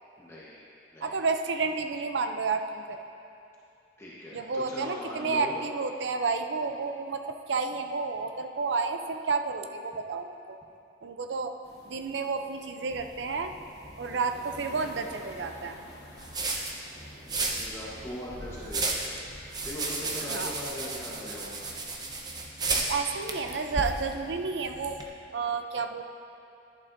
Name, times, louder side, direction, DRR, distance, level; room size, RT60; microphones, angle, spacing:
voice 1, 0.2-0.6 0.9-1.2 4.0-5.6 14.0-14.2 17.2-19.2 19.6-21.7, left 1 dB, 15° left, -8 dB, 1.1 m, -40 dB
voice 2, 1.0-3.0 4.3-10.6 11.0-11.5 11.9-13.5 14.0-15.8 20.3-20.5 22.7-25.0 25.3-26.0, right 4 dB, 80° right, 6 dB, 0.5 m, -31 dB
sound 1, 11.6-20.0, left 1 dB, 65° left, 1.0 m, -50 dB
sound 2, 12.9-25.1, right 3 dB, 20° right, 0.7 m, -35 dB
11.5 x 10.5 x 2.6 m, 2.6 s
head